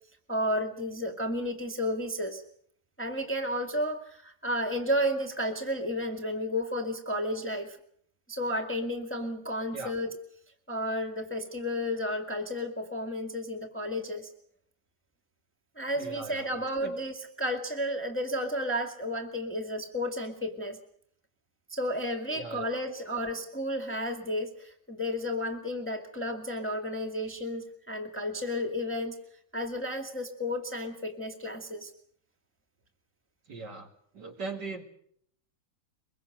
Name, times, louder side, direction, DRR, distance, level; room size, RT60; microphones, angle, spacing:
voice 1, 0.3-2.4 3.0-7.8 8.3-10.2 10.7-14.3 15.8-20.8 21.7-29.2 29.5-31.9, equal, 5° left, 3 dB, 1.9 m, -32 dB
voice 2, 16.0-16.9 22.3-22.6 33.5-33.9 34.1-34.8, right 3 dB, 50° right, 3 dB, 2.9 m, -39 dB
23.5 x 22.5 x 6.6 m, 0.66 s
omnidirectional pair, 2.3 m